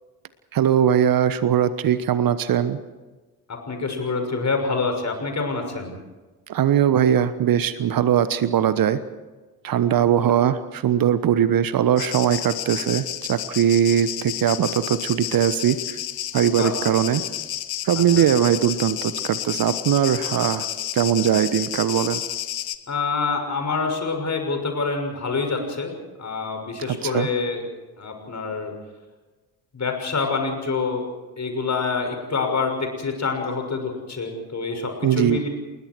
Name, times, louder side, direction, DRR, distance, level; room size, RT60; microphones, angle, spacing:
voice 1, 0.5-2.8 6.5-9.0 9.6-16.0 16.3-17.2 17.8-20.7 20.9-22.2 26.9-27.3 35.0-35.5, right 9 dB, 45° right, 14 dB, 1.2 m, -20 dB
voice 2, 3.5-5.9 16.6-16.7 18.2-18.3 22.9-25.9 26.2-27.6 28.0-28.7 29.7-31.1 31.4-35.5, left 4 dB, 35° left, 4 dB, 6.5 m, -26 dB
sound 1, 12.0-22.8, left 12 dB, 50° left, 1.5 m, -31 dB
29.5 x 20.5 x 4.7 m, 1.3 s
figure-of-eight pair, 45°, 47 cm